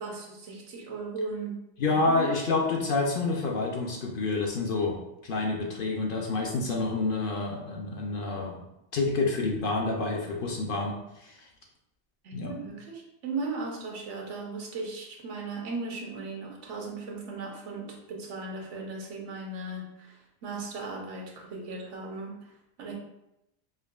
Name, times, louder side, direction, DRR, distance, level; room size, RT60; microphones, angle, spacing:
voice 1, 0.0-1.6 1.9-2.3 12.2-22.9, right 3 dB, 85° right, 0 dB, 1.1 m, -37 dB
voice 2, 1.8-5.0 5.2-8.6 8.9-11.5 12.3-12.5, left 3 dB, 60° left, 0 dB, 0.6 m, -28 dB
4.7 x 2.6 x 2.3 m, 0.87 s
omnidirectional pair, 1.2 m